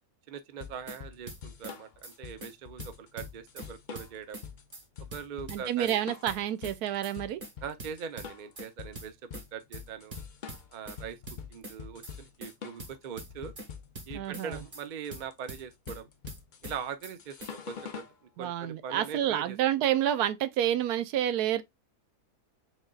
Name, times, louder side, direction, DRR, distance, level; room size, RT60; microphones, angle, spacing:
voice 1, 0.3-4.4 5.1-6.0 7.6-10.2 10.7-11.2 11.5-13.5 14.1-16.1 16.6-18.0 18.4-19.6, right 7 dB, 65° right, 0.4 m, -41 dB
sound 1, 0.6-18.2, left 7 dB, 60° left, 0.5 m, -45 dB
sound 2, 0.6-1.0 1.3-1.8 2.0-2.1 2.4-2.5 2.8-3.7 3.9-4.5 4.7-4.8 5.1-6.0 6.3-6.8 7.0-7.1 7.4-7.5 7.8-8.7 9.0-9.5 9.7-9.8 10.1-11.0 11.3-11.8 12.0-12.1 12.4-12.5 12.8-13.7 14.0-14.5 14.7-14.8 15.1-16.0 16.3-16.8 17.0-17.1 17.4-17.5, right 1 dB, 35° right, 1.4 m, -43 dB
voice 2, 5.5-7.4 14.1-14.6 18.4-21.6, right 11 dB, 85° right, 1.1 m, -29 dB
4.0 x 3.8 x 2.3 m
omnidirectional pair, 1.6 m